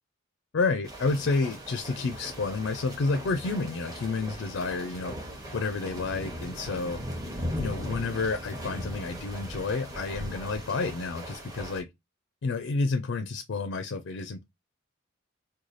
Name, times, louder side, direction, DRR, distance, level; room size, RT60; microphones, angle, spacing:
voice 1, 0.5-5.1 5.5-7.0 7.6-11.9 12.4-14.4, left 3 dB, 65° left, 0.4 m, -30 dB
sound 1, 0.8-11.8, equal, 20° right, 0.8 m, -38 dB
3.1 x 2.2 x 3.8 m
head